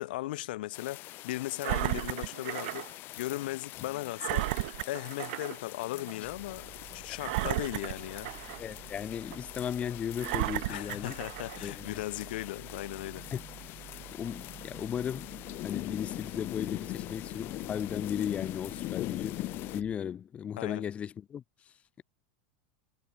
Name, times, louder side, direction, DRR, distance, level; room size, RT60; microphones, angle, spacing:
voice 1, 0.0-8.3 10.7-13.2 20.6-20.8, left 17 dB, 75° left, 0.5 m, -37 dB
sound 1, 0.7-19.8, left 18 dB, 45° left, 1.4 m, -42 dB
Engine, 1.6-2.9 3.3-3.4 4.2-5.6 6.0-6.1 7.2-8.7 9.3-9.4 10.2-11.7 12.3-12.4, right 21 dB, 70° right, 0.5 m, -34 dB
sound 2, 6.2-19.9, right 12 dB, 35° right, 3.7 m, -51 dB
voice 2, 8.5-11.2 11.6-12.0 13.3-13.4 14.1-15.4 15.6-19.4 19.7-22.0, left 8 dB, 25° left, 1.3 m, -36 dB
supercardioid pair, 135°, 5 cm